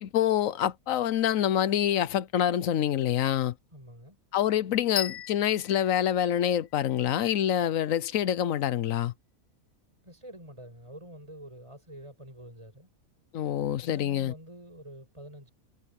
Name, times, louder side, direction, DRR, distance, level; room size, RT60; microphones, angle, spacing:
voice 1, 0.0-3.5 4.3-9.1 13.3-14.3, left 10 dB, 70° left, 1.1 m, -26 dB
voice 2, 3.7-4.2 10.0-12.9 13.8-15.5, right 1 dB, 20° right, 8.2 m, -47 dB
sound 1, 5.0-7.0, left 9 dB, 45° left, 0.9 m, -36 dB
omnidirectional pair, 1.5 m